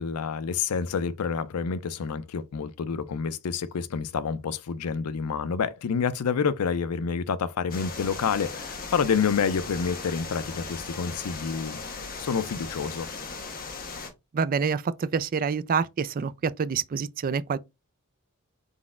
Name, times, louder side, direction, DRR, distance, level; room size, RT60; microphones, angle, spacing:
voice 1, 0.0-11.8 12.2-13.1, left 6 dB, 85° left, 0.5 m, -28 dB
sound 1, 7.7-14.1, left 4 dB, 40° left, 1.0 m, -38 dB
voice 2, 14.3-17.6, right 6 dB, 40° right, 0.3 m, -27 dB
4.2 x 3.9 x 2.4 m
head